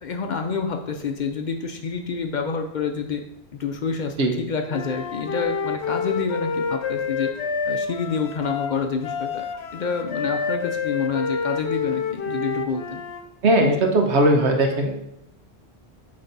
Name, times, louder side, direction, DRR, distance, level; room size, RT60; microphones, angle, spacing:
voice 1, 0.0-3.2 3.5-7.3 7.7-9.4 9.7-13.0 13.6-13.7, left 5 dB, 55° left, 5 dB, 0.6 m, -28 dB
Wind instrument woodwind instrument, 4.7-13.2, left 5 dB, 80° left, 0.9 m, -28 dB
voice 2, 13.4-15.0, right 1 dB, 90° right, 2 dB, 1.3 m, -19 dB
7.9 x 3.3 x 4.0 m, 0.80 s
omnidirectional pair, 1.1 m